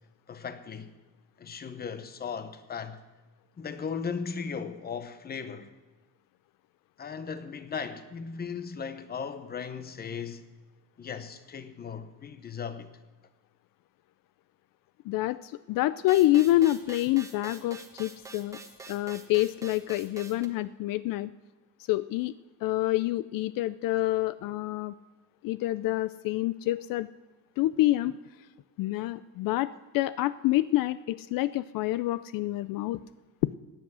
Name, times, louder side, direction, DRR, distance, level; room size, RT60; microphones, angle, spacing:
voice 1, 0.3-0.9 1.4-3.0 3.6-5.7 7.0-10.4 11.0-12.9, left 6 dB, 30° left, 0.9 m, -37 dB
voice 2, 15.0-18.6 18.9-21.3 21.9-22.3 22.6-24.9 25.4-27.1 27.6-28.1 28.8-33.0 33.4-33.5, left 16 dB, 75° left, 0.5 m, -27 dB
sound 1, 16.1-20.5, right 3 dB, 10° right, 1.3 m, -46 dB
16.5 x 9.7 x 6.2 m
cardioid pair, 150°, 34 cm